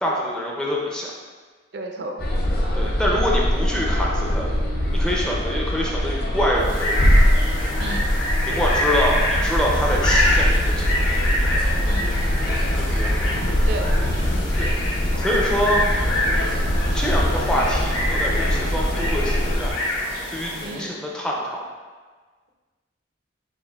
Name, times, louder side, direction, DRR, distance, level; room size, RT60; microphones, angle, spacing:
voice 1, 0.0-1.1 2.8-4.5 4.9-7.1 8.5-11.2 12.8-13.1 14.6-14.7 15.2-15.8 16.9-19.8 20.3-21.7, equal, 5° left, -3 dB, 0.4 m, -25 dB
voice 2, 1.7-2.2 7.8-8.1 11.8-12.1 13.6-13.9 20.6-20.9, right 1 dB, 60° right, 2 dB, 0.4 m, -32 dB
sound 1, 2.2-19.7, equal, 55° left, 0.5 m, -22 dB
sound 2, 6.5-20.9, left 1 dB, 80° left, 1.1 m, -26 dB
7.0 x 2.4 x 2.3 m, 1.4 s
head